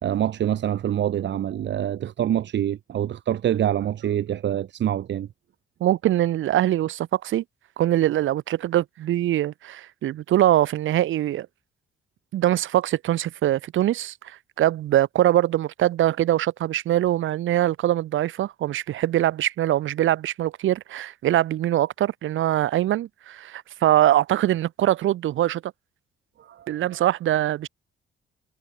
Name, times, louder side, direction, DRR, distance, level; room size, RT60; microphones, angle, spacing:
voice 1, 0.0-5.3 26.4-26.7, right 10 dB, 65° right, 1.7 m, -25 dB
voice 2, 5.8-7.4 7.8-11.5 12.3-25.7 26.7-27.7, right 13 dB, 80° right, 5.0 m, -23 dB
cardioid pair, 90°, 20 cm